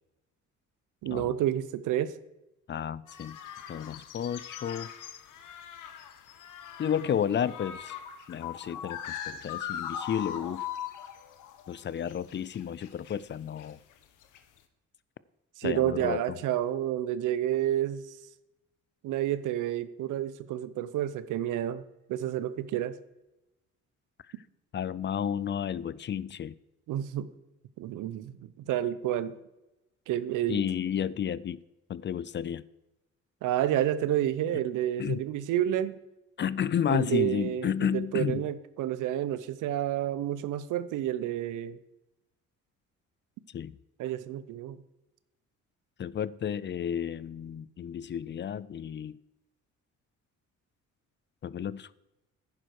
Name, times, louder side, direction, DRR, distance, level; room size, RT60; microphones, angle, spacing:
voice 1, 1.0-2.1 15.6-18.1 19.0-21.8 22.1-23.0 26.9-27.3 27.8-29.3 30.1-30.6 33.4-36.0 36.9-37.7 37.9-41.8 44.0-44.8, right 12 dB, 85° right, 15 dB, 0.7 m, -30 dB
voice 2, 2.7-3.4 3.7-4.9 6.8-8.0 8.3-10.7 11.7-13.8 15.6-16.4 24.7-26.5 30.5-31.6 31.9-32.6 35.0-35.2 36.4-38.5 43.5-43.7 46.0-49.2 51.4-51.9, left 8 dB, 40° left, 20 dB, 0.4 m, -32 dB
sound 1, 3.1-11.8 12.1-13.2 13.6-13.9 14.2-14.6, left 9 dB, 85° left, 1.1 m, -40 dB
11.0 x 9.6 x 4.6 m, 0.96 s
cardioid pair, 90°, 30 cm